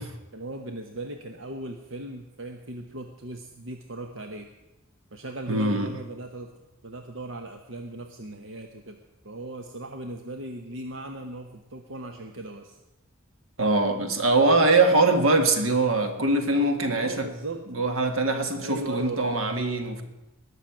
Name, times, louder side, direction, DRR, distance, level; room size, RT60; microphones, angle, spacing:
voice 1, 0.0-4.5 5.1-6.5 6.8-9.0 9.2-12.8 16.9-17.7 18.6-19.3, right 2 dB, 65° right, 5 dB, 1.0 m, -38 dB
voice 2, 5.5-5.9 13.6-17.3 17.7-20.0, right 2 dB, 80° right, 6 dB, 1.8 m, -22 dB
20.0 x 6.6 x 8.7 m, 0.99 s
head